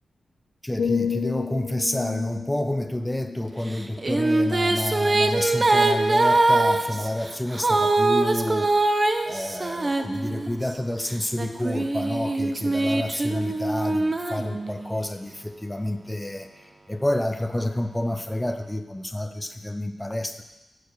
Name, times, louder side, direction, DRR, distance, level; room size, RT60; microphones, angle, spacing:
voice 1, 0.6-8.7 9.3-20.4, left 1 dB, 10° left, 7 dB, 0.5 m, -29 dB
sound 1, 0.8-4.7 5.2-5.5, left 6 dB, 70° left, 0.4 m, -32 dB
Female singing, 3.7-10.7 11.3-15.1, right 2 dB, 30° right, 0.7 m, -23 dB
8.0 x 6.9 x 6.6 m, 1.0 s
wide cardioid pair, 120°, 0 cm